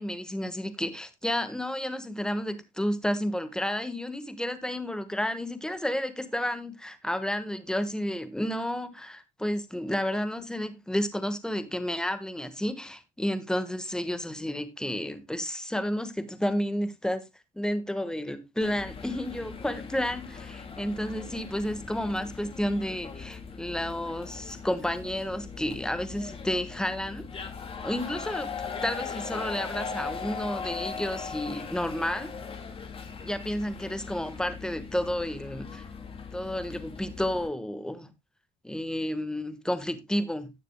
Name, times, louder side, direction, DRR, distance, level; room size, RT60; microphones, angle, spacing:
voice 1, 0.0-17.2 17.5-27.5 27.8-28.5 28.8-32.3 33.2-35.8 36.3-38.1 38.6-40.5, left 1 dB, 5° left, 1.4 m, -31 dB
sound 1, 18.6-37.5, left 5 dB, 35° left, 2.0 m, -39 dB
17.5 x 6.7 x 2.2 m
cardioid pair, 110°, 17 cm